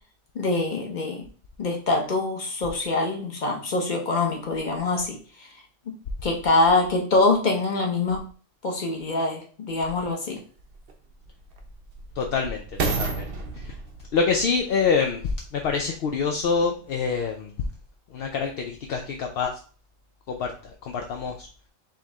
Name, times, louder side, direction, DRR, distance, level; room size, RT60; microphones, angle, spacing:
voice 1, 0.3-1.2 1.6-5.2 6.2-8.2 8.6-10.4, left 2 dB, 40° left, 1 dB, 1.1 m, -24 dB
sound 1, 9.8-9.9 10.6-15.9 16.5-16.6, right 4 dB, 50° right, 0.9 m, -33 dB
voice 2, 12.2-13.3 14.1-17.5 18.1-19.5 20.3-21.5, left 5 dB, 60° left, 3 dB, 0.7 m, -26 dB
4.6 x 3.1 x 3.5 m, 0.40 s
omnidirectional pair, 1.4 m